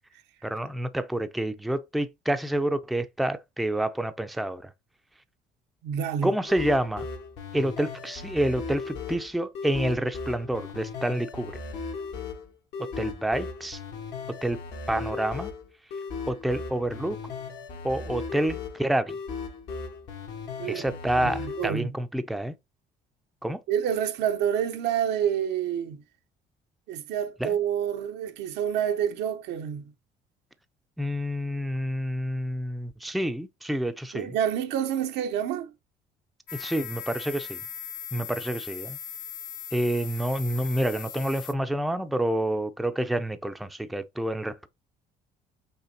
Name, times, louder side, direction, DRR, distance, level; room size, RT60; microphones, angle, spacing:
voice 1, 0.4-4.7 6.2-7.1 7.5-11.5 12.8-13.8 14.4-14.6 14.9-15.5 16.3-17.2 17.8-19.2 20.6-22.5 23.4-23.6 27.4-27.6 31.0-34.3 36.5-37.6 38.1-39.0 39.7-44.7, right 1 dB, ahead, 0.4 m, -28 dB
voice 2, 5.8-6.3 20.6-20.9 21.2-21.9 23.7-26.0 26.9-29.9 34.1-35.7, right 9 dB, 85° right, 0.7 m, -28 dB
sound 1, 6.5-21.7, left 4 dB, 80° left, 1.4 m, -37 dB
sound 2, 36.5-41.5, left 8 dB, 60° left, 0.6 m, -39 dB
5.6 x 3.3 x 2.7 m
cardioid pair, 110°, 17 cm